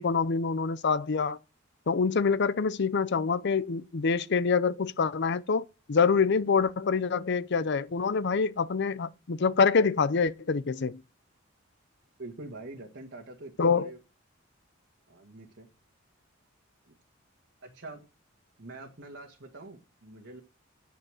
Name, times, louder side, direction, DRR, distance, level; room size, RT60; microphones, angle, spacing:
voice 1, 0.0-1.4 1.9-11.0 13.6-13.9, left 5 dB, 60° left, 0.6 m, -26 dB
voice 2, 12.2-14.0 15.1-15.7 16.9-17.0 17.6-18.0 18.6-20.4, right 2 dB, 60° right, 1.8 m, -45 dB
9.8 x 9.2 x 6.4 m
head